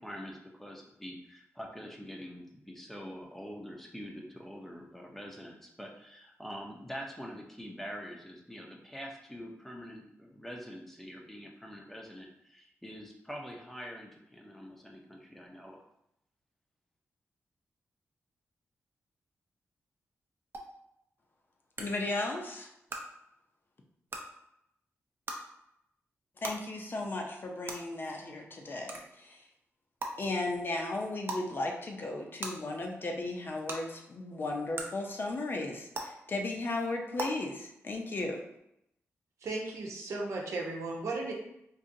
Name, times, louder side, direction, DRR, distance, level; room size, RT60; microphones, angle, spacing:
voice 1, 0.0-15.8, equal, 5° left, 0 dB, 0.6 m, -45 dB
sound 1, 20.5-20.6 21.8-21.9 22.9-23.0 24.1-24.2 25.3-25.4 26.4-26.5 27.7-27.8 28.9-29.0 30.0-30.1 31.2-31.4 32.4-32.5 33.7-33.8 34.7-34.8 35.9-36.0 37.2-37.3, right 2 dB, 45° right, 0.5 m, -36 dB
voice 2, 21.8-22.7 26.4-29.4 30.2-38.4, left 2 dB, 45° left, 1 dB, 0.6 m, -35 dB
voice 3, 39.4-41.3, right 3 dB, 75° right, -1 dB, 0.8 m, -35 dB
3.9 x 2.7 x 2.6 m, 0.81 s
cardioid pair, 95°, 5 cm